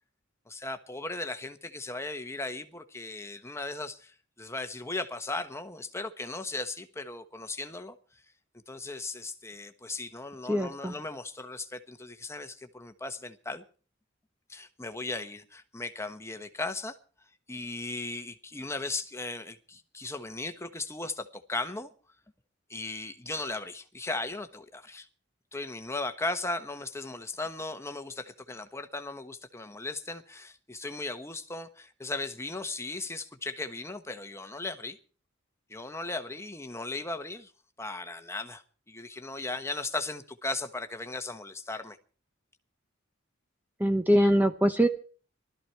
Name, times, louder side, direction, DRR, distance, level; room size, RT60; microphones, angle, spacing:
voice 1, 0.5-8.0 8.7-13.6 14.5-16.9 17.5-21.9 22.7-25.1 25.5-35.0 35.7-37.5 37.8-42.0, left 2 dB, 15° left, 1.2 m, -37 dB
voice 2, 10.5-11.0 43.8-44.9, equal, 10° right, 0.9 m, -23 dB
19.0 x 13.0 x 4.6 m
head